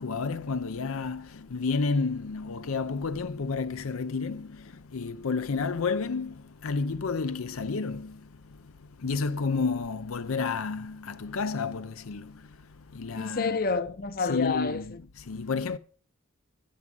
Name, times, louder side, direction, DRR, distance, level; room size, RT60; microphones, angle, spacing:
voice 1, 0.0-13.6 14.2-15.8, left 4 dB, 70° left, 0.6 m, -31 dB
voice 2, 13.1-15.0, left 4 dB, 40° left, 0.8 m, -29 dB
16.0 x 6.1 x 5.4 m
head